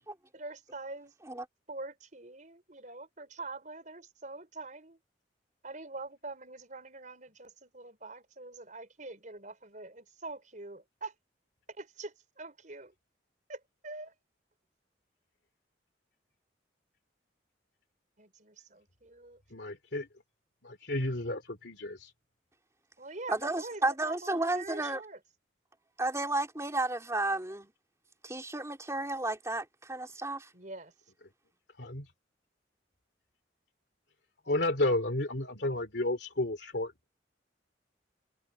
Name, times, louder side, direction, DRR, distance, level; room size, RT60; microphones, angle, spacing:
voice 1, 0.3-1.1 1.7-5.0 5.6-11.2 11.7-12.9 13.5-14.1 18.2-19.4 23.0-25.2 30.5-30.9, right 2 dB, 45° right, 5.2 m, -44 dB
voice 2, 19.5-20.1 20.6-22.1 31.8-32.1 34.5-37.1, left 1 dB, 65° left, 2.9 m, -32 dB
voice 3, 23.3-25.0 26.0-27.7 28.2-30.5, right 2 dB, 15° right, 3.9 m, -32 dB
head